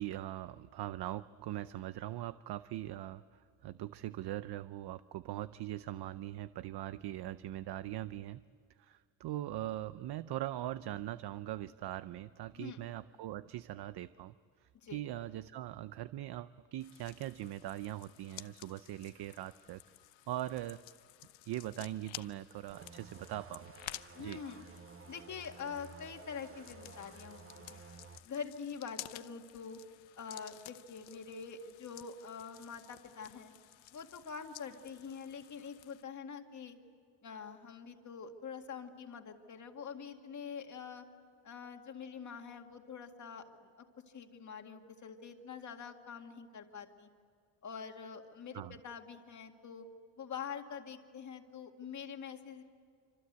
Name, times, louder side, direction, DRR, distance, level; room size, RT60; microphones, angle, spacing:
voice 1, 0.0-8.4 8.8-14.3 14.6-19.8 20.3-20.8 21.4-23.7 24.2-24.4 48.5-48.8, right 13 dB, 60° right, 14 dB, 0.6 m, -41 dB
sound 1, 16.8-36.0, left 15 dB, 80° left, 0.9 m, -53 dB
sound 2, 22.7-28.2, right 4 dB, 30° right, 1.1 m, -54 dB
voice 2, 24.1-24.7 25.1-27.4 27.7-27.8 28.2-29.8 30.2-33.5 33.9-36.8 37.2-41.0 41.4-43.9 44.1-47.1 47.6-49.9 50.2-52.6, left 6 dB, 40° left, 4 dB, 2.1 m, -45 dB
27.0 x 26.0 x 8.1 m, 2.2 s
cardioid pair, 170°, 45 cm